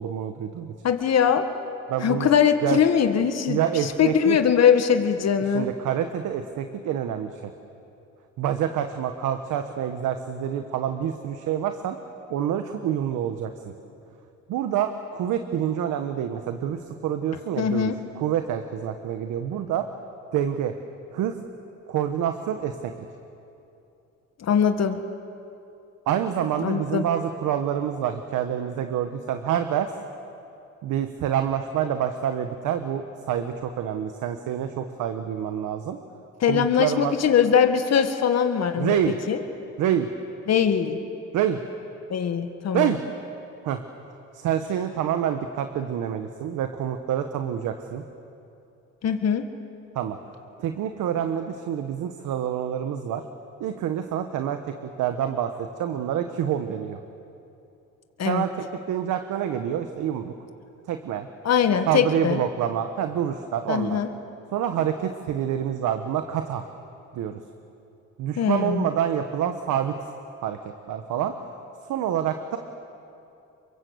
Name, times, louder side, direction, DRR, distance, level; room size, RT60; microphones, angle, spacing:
voice 1, 0.0-0.7 1.9-2.3 2.6-2.8 3.5-4.4 5.5-7.5 8.4-12.0 12.3-13.5 14.5-19.9 20.3-20.7 21.1-21.4 21.9-22.9 26.1-29.9 30.8-36.0 36.4-37.1 38.8-39.1 39.8-40.1 41.3-41.6 42.7-43.0 43.6-43.8 44.3-48.0 49.9-50.2 50.6-53.2 53.6-55.5 55.8-57.0 58.2-58.5 58.9-60.3 60.9-61.3 61.9-64.0 64.5-66.6 67.1-67.4 68.2-69.9 70.4-70.6 70.9-71.3 71.9-72.6, right 10 dB, 90° right, 7 dB, 1.4 m, -27 dB
voice 2, 0.8-1.5 2.0-5.7 17.6-18.0 24.4-25.0 26.6-27.0 36.4-39.0 39.3-39.4 40.5-41.0 42.1-42.9 49.0-49.4 58.2-58.5 61.5-62.4 63.7-64.1 68.4-68.9, left 7 dB, 60° left, 7 dB, 1.8 m, -21 dB
28.0 x 23.5 x 8.1 m, 2.8 s
cardioid pair, 90°, 30 cm